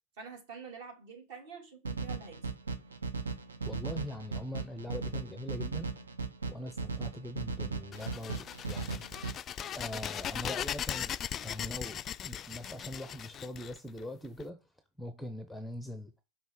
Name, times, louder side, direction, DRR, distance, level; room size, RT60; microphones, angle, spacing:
voice 1, 0.2-2.4, right 5 dB, 50° right, 2.5 m, -47 dB
sound 1, 1.8-9.3, right 4 dB, 70° right, 0.8 m, -37 dB
voice 2, 3.7-5.9 6.5-9.0 9.7-11.1 11.4-14.6 15.0-16.2, left 1 dB, ahead, 0.7 m, -42 dB
sound 2, 7.9-14.4, left 9 dB, 25° left, 0.3 m, -38 dB
5.7 x 5.5 x 4.5 m
figure-of-eight pair, 90°, 0 cm